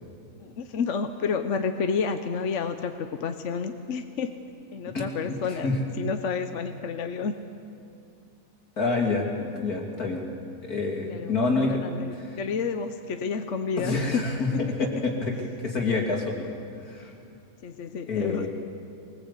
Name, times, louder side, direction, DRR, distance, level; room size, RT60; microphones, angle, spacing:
voice 1, 0.4-4.3 4.7-7.3 11.1-14.2 14.5-15.0 17.6-18.5, left 5 dB, 55° left, 7 dB, 1.1 m, -30 dB
voice 2, 4.9-5.8 8.8-10.2 10.6-11.8 12.1-12.4 13.8-15.3 15.6-16.5 16.9-17.1 18.1-18.5, left 3 dB, 70° left, 0 dB, 3.2 m, -27 dB
22.5 x 20.0 x 8.3 m, 2.5 s
omnidirectional pair, 1.6 m